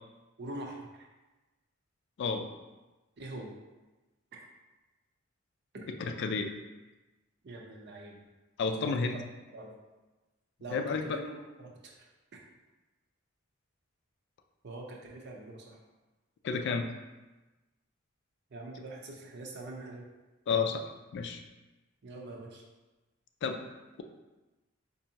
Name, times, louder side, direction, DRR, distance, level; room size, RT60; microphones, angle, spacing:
voice 1, 0.4-1.1 3.2-3.5 4.3-4.4 7.4-8.2 8.8-9.2 9.5-9.7 10.6-12.1 14.6-15.8 18.5-20.1 22.0-22.6, right 2 dB, 55° right, 0 dB, 0.6 m, -44 dB
voice 2, 6.0-6.5 8.6-9.2 10.7-11.2 16.4-16.9 20.5-20.8 21.1-21.4 23.4-23.6, left 5 dB, 55° left, 6 dB, 0.3 m, -31 dB
4.4 x 2.6 x 2.8 m, 1.1 s
head